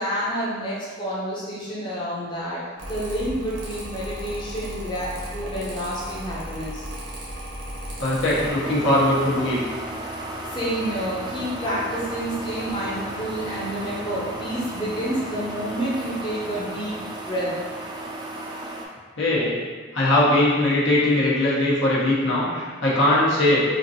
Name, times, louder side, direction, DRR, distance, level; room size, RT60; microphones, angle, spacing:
voice 1, 0.0-6.9 10.5-16.9 17.3-17.5 19.3-19.5, equal, 25° left, -7 dB, 0.7 m, -29 dB
Mechanical fan, 2.8-8.5, equal, 90° right, 1.1 m, -35 dB
voice 2, 8.0-9.6 19.2-19.5 19.9-23.6, left 1 dB, 80° left, -7 dB, 0.9 m, -20 dB
sound 1, 8.3-18.9, right 1 dB, 20° right, 0.3 m, -34 dB
4.3 x 2.5 x 2.8 m, 1.5 s
head